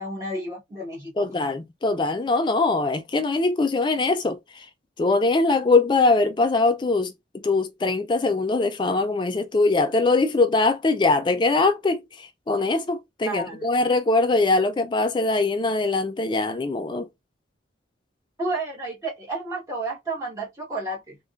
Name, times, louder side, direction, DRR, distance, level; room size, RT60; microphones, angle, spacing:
voice 1, 0.0-1.3 13.3-13.7 18.4-21.2, right 2 dB, 15° right, 1.3 m, -31 dB
voice 2, 1.2-4.6 5.0-7.1 7.4-17.1, left 3 dB, 25° left, 0.3 m, -22 dB
3.5 x 2.3 x 2.4 m
head